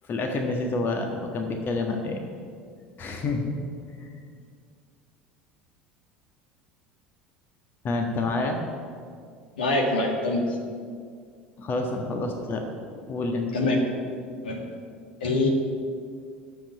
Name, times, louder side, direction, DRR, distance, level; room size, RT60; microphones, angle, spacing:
voice 1, 0.0-2.2 3.0-3.6 4.0-4.2 7.8-8.6 11.6-12.7 13.1-13.5, left 3 dB, 40° left, 3 dB, 1.5 m, -28 dB
voice 2, 9.6-10.5 13.5-13.8 14.4-14.7 15.2-15.5, left 2 dB, 75° left, 1 dB, 2.0 m, -24 dB
9.7 x 7.3 x 8.8 m, 2.2 s
figure-of-eight pair, 70°, 5 cm